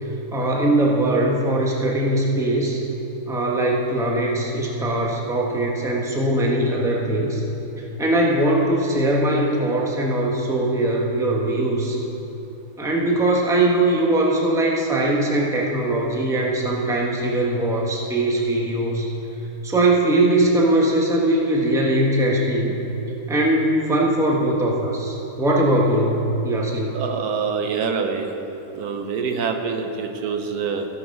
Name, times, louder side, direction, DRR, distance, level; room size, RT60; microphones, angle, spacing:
voice 1, 0.3-2.8 3.3-7.4 7.8-12.0 12.8-19.1 19.6-22.8 23.3-26.9, right 1 dB, ahead, -2 dB, 1.0 m, -21 dB
voice 2, 26.9-28.3 28.7-30.9, right 5 dB, 75° right, 5 dB, 1.3 m, -25 dB
16.5 x 5.8 x 5.3 m, 3.0 s
omnidirectional pair, 1.7 m